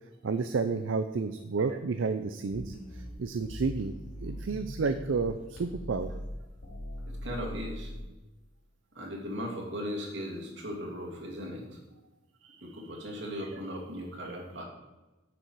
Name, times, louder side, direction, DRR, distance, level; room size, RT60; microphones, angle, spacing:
voice 1, 0.2-6.1 12.4-12.6 13.0-13.1, right 4 dB, 85° right, 9 dB, 0.5 m, -31 dB
sound 1, 2.5-5.2 5.6-8.0, equal, 85° left, 2.6 m, -41 dB
voice 2, 7.1-7.9 8.9-11.8 12.6-14.6, equal, 70° right, -1 dB, 2.5 m, -38 dB
9.7 x 6.8 x 4.7 m, 1.1 s
head